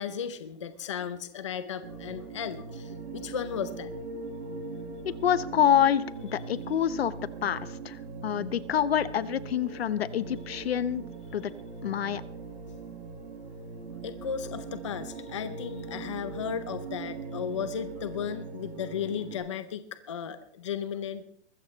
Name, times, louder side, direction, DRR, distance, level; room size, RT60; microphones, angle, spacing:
voice 1, 0.0-3.9 14.0-21.2, left 7 dB, 25° left, 11 dB, 0.6 m, -35 dB
sound 1, 1.8-19.4, right 4 dB, 60° right, 6.7 m, -40 dB
voice 2, 5.0-7.1 7.4-8.0 8.2-11.0 11.3-11.5 11.8-12.2, left 9 dB, 60° left, 15 dB, 1.0 m, -26 dB
22.0 x 15.5 x 3.1 m, 0.66 s
hypercardioid pair, 180°, 35 cm